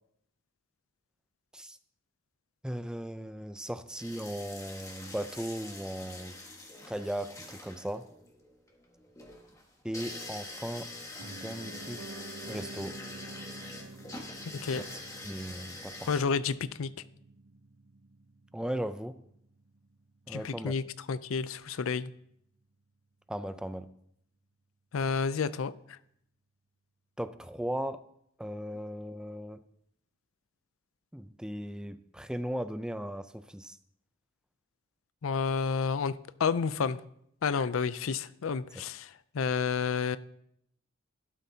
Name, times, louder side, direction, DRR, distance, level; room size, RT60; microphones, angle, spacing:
voice 1, 2.6-6.4 6.9-8.1 9.8-10.9 11.2-12.1 12.5-13.0 15.2-16.1 18.5-19.2 20.3-20.7 23.3-23.9 27.2-28.0 28.4-29.6 31.1-33.8, equal, 5° right, 0.4 m, -37 dB
sound 1, 4.0-16.2, left 2 dB, 15° left, 1.5 m, -45 dB
Piano, 11.2-21.2 21.5-21.6, right 2 dB, 60° right, 0.5 m, -49 dB
voice 2, 16.1-16.9 20.3-22.1 24.9-26.0 35.2-37.0 37.4-40.2, left 5 dB, 85° left, 0.5 m, -30 dB
12.5 x 11.5 x 2.8 m
head